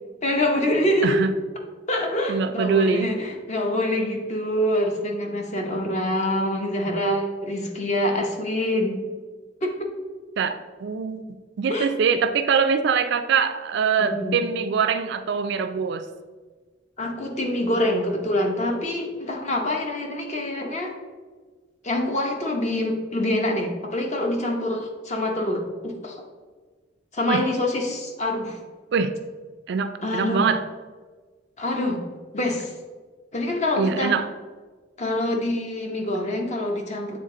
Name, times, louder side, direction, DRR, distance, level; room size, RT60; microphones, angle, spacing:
voice 1, 0.2-1.2 1.9-9.1 9.6-9.9 11.7-11.9 14.0-14.4 17.0-20.9 21.8-26.2 27.1-28.6 30.0-30.5 31.6-32.0 32.3-32.7 33.3-34.1 35.0-37.2, left 1 dB, 40° left, 2 dB, 0.9 m, -25 dB
voice 2, 2.3-3.1 10.4-11.2 11.6-16.1 27.3-27.4 28.9-29.1 29.7-30.6 33.8-34.3, right 6 dB, 60° right, 11 dB, 0.4 m, -23 dB
7.9 x 3.8 x 3.7 m, 1.4 s
head